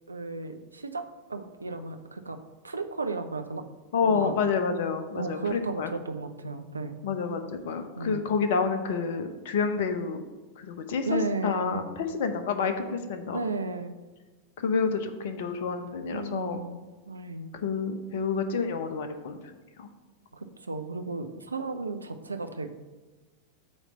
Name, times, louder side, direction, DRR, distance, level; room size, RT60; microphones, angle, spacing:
voice 1, 0.1-3.7 4.0-4.3 5.1-7.0 8.0-8.3 11.1-11.8 13.3-13.9 16.1-16.8 17.1-17.6 20.3-22.7, right 3 dB, 80° right, 7 dB, 0.5 m, -34 dB
voice 2, 3.9-5.9 7.0-10.2 10.6-13.4 14.6-16.6 17.5-19.4 19.8-19.9, left 5 dB, 55° left, 8 dB, 0.8 m, -29 dB
8.4 x 3.2 x 6.3 m, 1.3 s
figure-of-eight pair, 90°, 0 cm